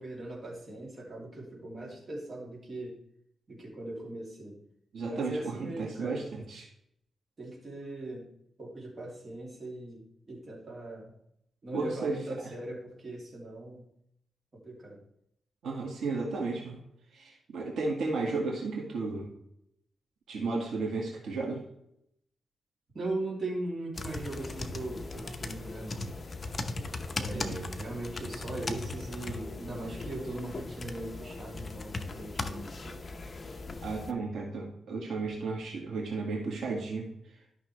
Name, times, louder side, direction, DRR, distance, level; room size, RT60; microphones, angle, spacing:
voice 1, 0.0-3.0 3.5-4.6 5.0-6.3 7.4-8.3 8.6-11.1 11.6-13.9 14.6-15.0 22.9-26.1 27.2-33.0, right 2 dB, 35° right, -2 dB, 2.9 m, -39 dB
voice 2, 4.9-6.6 11.7-12.5 15.6-16.8 17.1-19.3 20.3-21.6 27.3-27.6 33.8-37.1, right 3 dB, 85° right, -1 dB, 1.9 m, -34 dB
sound 1, 23.9-34.1, left 3 dB, 30° left, 0.7 m, -38 dB
12.5 x 5.8 x 3.3 m, 0.75 s
wide cardioid pair, 125°, 0 cm